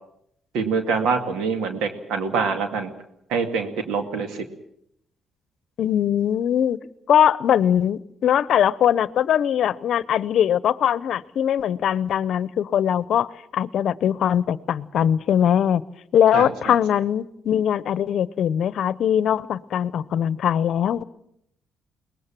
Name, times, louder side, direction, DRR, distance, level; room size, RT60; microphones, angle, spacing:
voice 1, 0.5-2.9 3.3-4.4 16.3-16.8, right 5 dB, 90° right, 7 dB, 2.3 m, -25 dB
voice 2, 5.8-6.8 7.1-15.8 16.1-21.0, left 9 dB, 70° left, 18 dB, 0.8 m, -21 dB
22.5 x 19.5 x 7.5 m, 0.75 s
cardioid pair, 90°, 0 cm